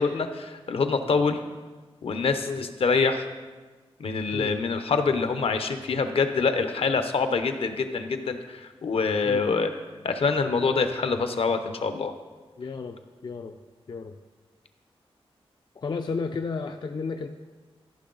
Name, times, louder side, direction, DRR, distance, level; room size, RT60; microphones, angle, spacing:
voice 1, 0.0-1.4 2.0-3.3 4.0-9.7 10.0-12.1, left 4 dB, 70° left, 8 dB, 0.7 m, -25 dB
voice 2, 12.6-13.6 13.9-14.2 15.8-17.3, left 4 dB, 45° left, 6 dB, 0.4 m, -32 dB
14.0 x 6.1 x 3.9 m, 1.3 s
wide cardioid pair, 140°, 10 cm